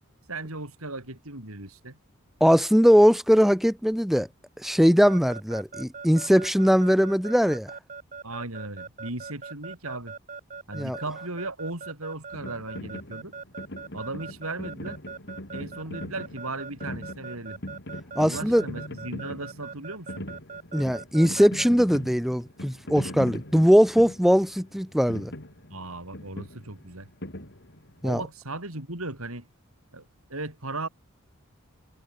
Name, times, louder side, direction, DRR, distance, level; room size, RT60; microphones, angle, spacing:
voice 1, 0.3-2.0 8.2-10.1 10.7-13.3 13.9-15.0 15.5-17.6 18.2-20.3 25.7-27.1 28.0-29.5 29.9-30.0 30.3-30.9, right 2 dB, 85° right, 6.4 m, -36 dB
voice 2, 2.4-4.3 4.6-7.7 10.7-11.0 18.2-18.6 20.7-25.3 28.0-28.2, equal, ahead, 2.0 m, -20 dB
Keyboard (musical) / Alarm, 5.1-21.7, right 5 dB, 35° right, 3.1 m, -40 dB
sound 1, 12.3-28.1, left 1 dB, 55° left, 4.9 m, -41 dB
head